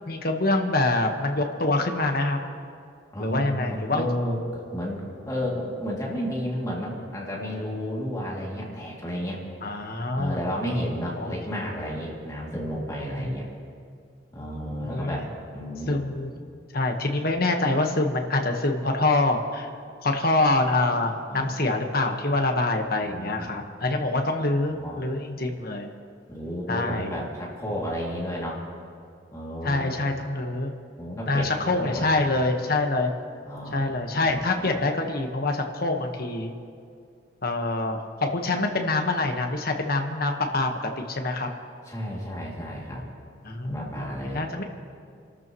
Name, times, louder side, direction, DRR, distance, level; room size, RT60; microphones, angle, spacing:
voice 1, 0.1-2.4 3.2-4.1 9.6-10.4 11.2-11.7 13.2-13.4 14.6-15.2 15.9-16.3 16.7-19.7 20.0-25.9 26.7-27.1 29.6-30.7 31.3-33.1 33.7-36.5 37.4-41.5 43.4-44.6, left 2 dB, 50° left, 4 dB, 1.3 m, -25 dB
voice 2, 3.1-9.4 10.1-13.4 14.3-16.0 21.3-21.5 23.0-23.5 23.9-24.0 24.7-25.0 26.3-28.6 29.3-30.0 30.9-31.5 31.8-32.1 33.5-33.9 34.2-34.3 41.9-43.0 43.6-44.4, equal, 15° left, -4 dB, 2.5 m, -32 dB
29.0 x 13.0 x 3.1 m, 2.2 s
head